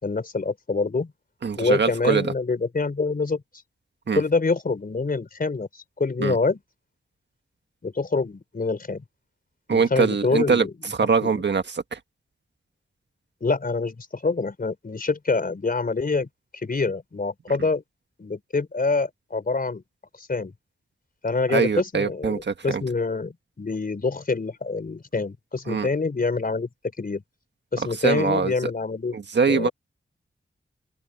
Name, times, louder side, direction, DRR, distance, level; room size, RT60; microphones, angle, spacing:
voice 1, 0.0-1.1 1.5-3.4 4.1-6.6 7.8-9.0 9.7-10.7 11.2-11.3 13.4-17.8 18.2-19.8 20.2-20.5 21.2-27.2 27.7-29.2 29.5-29.7, left 4 dB, 45° left, 4.3 m, -26 dB
voice 2, 1.4-2.3 4.1-4.2 6.2-6.4 9.7-10.6 11.0-12.0 21.5-22.8 25.7-25.9 28.0-28.5 29.1-29.7, right 5 dB, 60° right, 1.6 m, -23 dB
cardioid pair, 70°, 20 cm